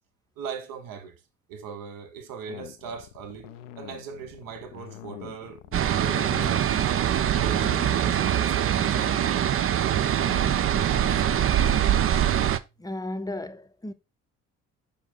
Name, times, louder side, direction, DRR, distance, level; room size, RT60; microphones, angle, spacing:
voice 1, 0.4-1.2 1.5-6.7 7.4-9.1, right 6 dB, 60° right, 1.4 m, -39 dB
sound 1, 2.5-11.9, left 14 dB, 80° left, 0.6 m, -44 dB
sound 2, 5.1-12.9, left 1 dB, 80° right, 1.5 m, -50 dB
sound 3, 5.7-12.6, right 10 dB, 35° right, 0.6 m, -23 dB
voice 2, 12.8-13.9, left 1 dB, 10° left, 0.7 m, -34 dB
6.6 x 5.2 x 3.7 m
figure-of-eight pair, 45°, 37 cm